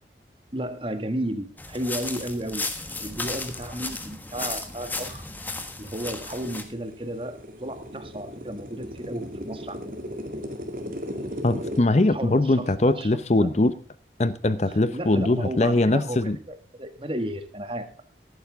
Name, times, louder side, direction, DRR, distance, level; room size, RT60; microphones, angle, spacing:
voice 1, 0.5-2.7 3.0-5.2 5.8-9.9 12.1-13.5 14.7-18.0, right 1 dB, 30° right, 9 dB, 1.5 m, -33 dB
sound 1, 1.6-6.6, left 2 dB, 10° left, 1.3 m, -34 dB
sound 2, 5.3-5.4 5.9-11.8, equal, 50° right, 2.3 m, -36 dB
voice 2, 11.4-13.7 14.2-16.4, left 2 dB, 40° left, 14 dB, 0.7 m, -21 dB
14.5 x 11.5 x 3.5 m, 0.37 s
head